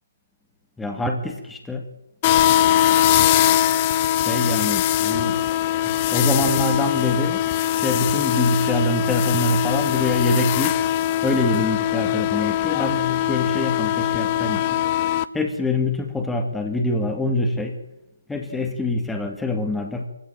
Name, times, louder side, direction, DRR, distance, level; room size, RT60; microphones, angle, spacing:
voice 1, 0.8-1.8 4.2-5.4 6.1-7.4 7.7-10.8 11.2-14.8 15.3-17.8 18.3-20.1, left 2 dB, 5° left, 3 dB, 1.9 m, -24 dB
sound 1, 2.2-15.2, left 12 dB, 25° left, 0.8 m, -21 dB
23.0 x 15.5 x 9.0 m, 0.93 s
figure-of-eight pair, 145°, 0 cm